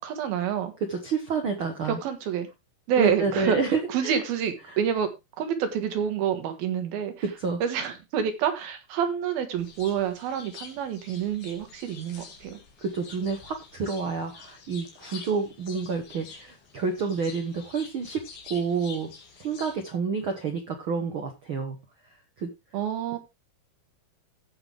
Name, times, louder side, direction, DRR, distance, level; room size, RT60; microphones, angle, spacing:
voice 1, 0.0-0.7 2.0-2.5 2.9-3.6 3.9-5.1 5.4-7.1 7.6-12.6 22.7-23.2, right 8 dB, 75° right, 7 dB, 3.4 m, -28 dB
voice 2, 0.9-2.0 3.0-4.2 4.7-4.8 7.2-7.6 12.8-19.1 19.4-21.8 22.4-22.5, right 5 dB, 60° right, 4 dB, 1.4 m, -29 dB
sound 1, 9.6-19.8, left 5 dB, 90° left, 4.4 m, -47 dB
16.0 x 5.8 x 3.4 m, 0.24 s
omnidirectional pair, 4.3 m